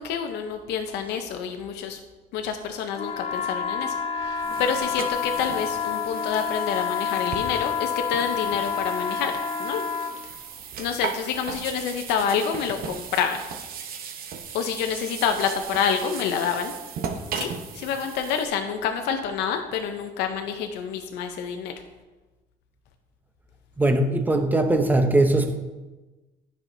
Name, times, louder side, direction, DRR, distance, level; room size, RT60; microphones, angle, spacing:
voice 1, 0.0-2.0 2.3-9.8 10.8-13.4 14.5-16.7 17.3-21.7, left 7 dB, 85° left, 5 dB, 0.5 m, -28 dB
sound 1, 2.9-10.2, left 7 dB, 40° left, 0.7 m, -28 dB
sound 2, 4.2-18.5, right 6 dB, 60° right, 0.8 m, -37 dB
voice 2, 23.8-25.6, right 2 dB, 10° right, 6 dB, 0.7 m, -20 dB
9.8 x 5.5 x 2.6 m, 1.2 s
cardioid pair, 110°, 17 cm